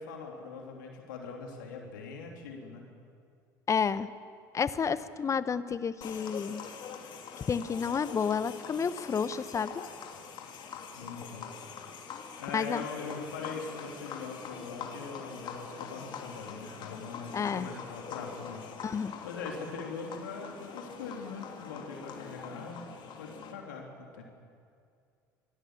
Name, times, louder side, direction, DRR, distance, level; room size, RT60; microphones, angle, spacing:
voice 1, 0.0-2.8 11.0-11.5 12.4-18.6 19.0-22.9 23.2-24.2, left 4 dB, 70° left, 1 dB, 3.1 m, -42 dB
voice 2, 3.7-4.1 4.5-6.6 7.4-9.8 12.5-12.8 17.3-17.7 18.8-19.1, left 6 dB, 30° left, 15 dB, 1.0 m, -30 dB
sound 1, 6.0-23.5, left 6 dB, 45° left, 3.0 m, -44 dB
26.0 x 18.5 x 7.4 m, 2.3 s
figure-of-eight pair, 65°, 11 cm